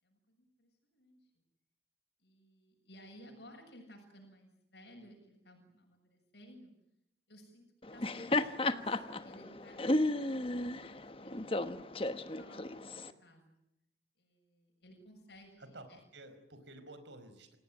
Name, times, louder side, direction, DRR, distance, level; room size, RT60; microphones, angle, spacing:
voice 1, 0.0-1.3 2.2-6.7 7.3-11.7 12.4-13.6 14.2-16.0, equal, 70° left, 0 dB, 7.3 m, -57 dB
Laughter, 7.8-13.1, left 2 dB, 30° left, 1.2 m, -34 dB
voice 2, 15.6-17.6, right 2 dB, 85° right, 9 dB, 5.1 m, -52 dB
28.5 x 18.0 x 9.2 m, 0.82 s
head